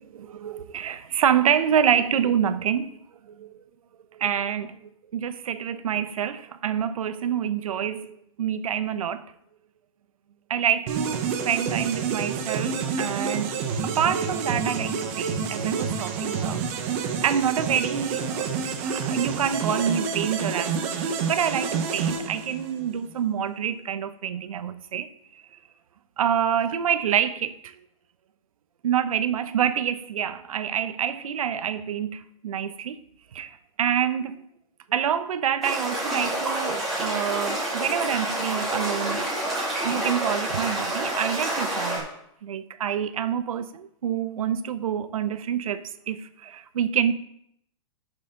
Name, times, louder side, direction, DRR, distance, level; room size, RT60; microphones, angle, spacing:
voice 1, 0.0-2.9 3.3-3.6 4.2-4.8 5.1-9.2 10.5-13.6 13.8-16.6 17.2-18.6 18.8-25.1 26.2-27.7 28.8-33.0 33.3-34.4 34.9-39.3 39.7-42.1 42.4-47.1, right 9 dB, 85° right, 0.8 m, -27 dB
sound 1, 10.9-22.9, right 6 dB, 25° right, 0.9 m, -28 dB
sound 2, 35.6-42.0, right 1 dB, ahead, 2.6 m, -28 dB
11.5 x 6.7 x 3.8 m
hypercardioid pair, 180°, 17 cm